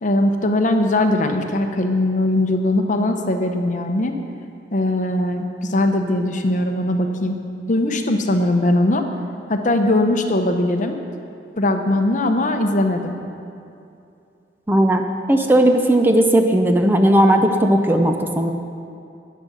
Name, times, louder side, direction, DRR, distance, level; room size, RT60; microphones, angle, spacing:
voice 1, 0.0-4.1 4.7-7.4 7.7-9.0 9.5-11.0 11.6-13.1, left 1 dB, 45° left, 5 dB, 0.8 m, -20 dB
voice 2, 14.7-18.5, right 1 dB, 10° right, 4 dB, 0.6 m, -16 dB
10.0 x 9.3 x 6.3 m, 2.6 s
head